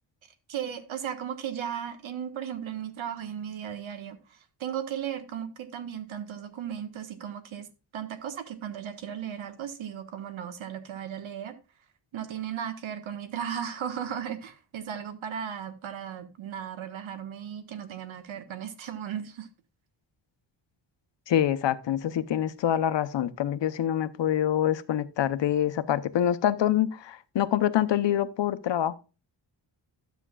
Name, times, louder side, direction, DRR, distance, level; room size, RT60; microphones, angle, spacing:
voice 1, 0.5-4.2 4.6-7.7 7.9-11.5 12.1-19.5, right 9 dB, 80° right, 1.4 m, -36 dB
voice 2, 21.3-28.9, left 11 dB, 65° left, 0.8 m, -26 dB
12.5 x 8.1 x 2.3 m
wide cardioid pair, 135°, 47 cm